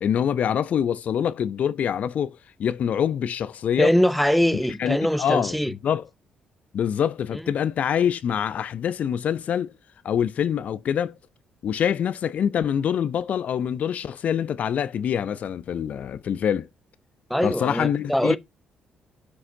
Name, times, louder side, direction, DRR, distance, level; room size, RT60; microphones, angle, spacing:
voice 1, 0.0-3.9 4.8-6.0 6.7-9.7 10.0-11.1 11.6-16.7 17.4-18.4, left 8 dB, 60° left, 0.5 m, -25 dB
voice 2, 3.8-5.7 17.3-18.4, equal, ahead, 0.8 m, -22 dB
11.0 x 6.4 x 2.7 m
hypercardioid pair, 45°, 3 cm